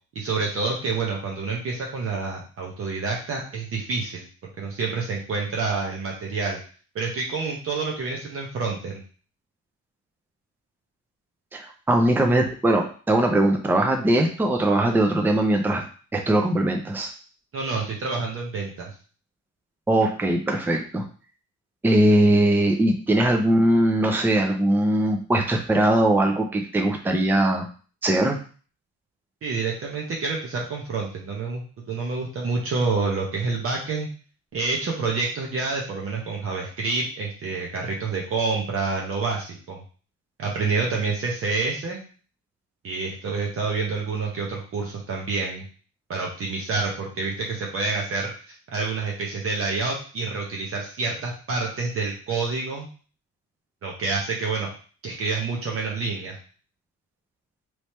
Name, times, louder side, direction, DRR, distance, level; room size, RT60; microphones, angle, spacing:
voice 1, 0.1-4.3 4.6-6.6 6.9-9.0 17.5-18.9 29.4-34.1 34.5-39.8 40.4-42.0 42.8-45.6 46.1-52.9 53.8-54.7 55.0-56.4, right 4 dB, 50° right, -2 dB, 0.9 m, -28 dB
voice 2, 11.5-15.8 16.1-17.1 19.9-21.0 21.8-27.7 28.0-28.4, right 1 dB, 5° right, 3 dB, 0.5 m, -20 dB
3.4 x 3.1 x 4.2 m, 0.40 s
cardioid pair, 160°, 30 cm